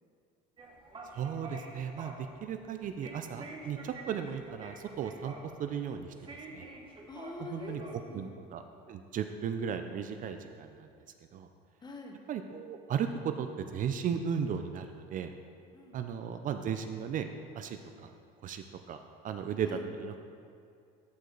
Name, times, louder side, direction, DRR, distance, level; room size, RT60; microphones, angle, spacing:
sound 1, 0.6-7.9, right 2 dB, 25° right, 1.3 m, -48 dB
voice 1, 1.1-5.3 5.6-6.7 7.4-7.8 8.1-8.6 8.9-10.9 11.3-11.5 12.3-15.3 15.9-17.3 17.5-18.1 18.4-20.2, right 7 dB, 45° right, 7 dB, 0.5 m, -36 dB
voice 2, 7.1-8.3 11.8-12.2 15.7-16.0 19.6-19.9, left 3 dB, 20° left, 3 dB, 1.2 m, -45 dB
13.5 x 5.1 x 3.9 m, 2.4 s
supercardioid pair, 105°, 19 cm